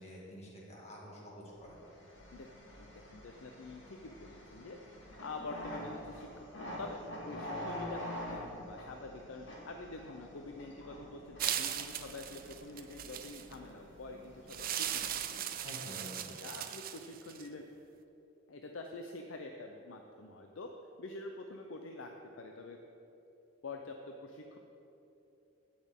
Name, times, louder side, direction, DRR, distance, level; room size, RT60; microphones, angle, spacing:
voice 1, 0.0-1.8 15.6-16.5, equal, 35° left, -4 dB, 2.0 m, -48 dB
sound 1, 1.7-15.6, left 1 dB, 70° left, 1.9 m, -47 dB
voice 2, 2.8-4.8 5.2-7.0 7.2-15.6 16.4-17.7 18.5-20.7 21.0-22.1 22.4-22.8 23.6-24.6, left 2 dB, 90° left, 3 dB, 0.6 m, -46 dB
sound 2, 11.4-13.5 14.5-17.5, right 10 dB, 50° right, 0.5 m, -38 dB
16.0 x 6.2 x 3.6 m, 2.9 s
head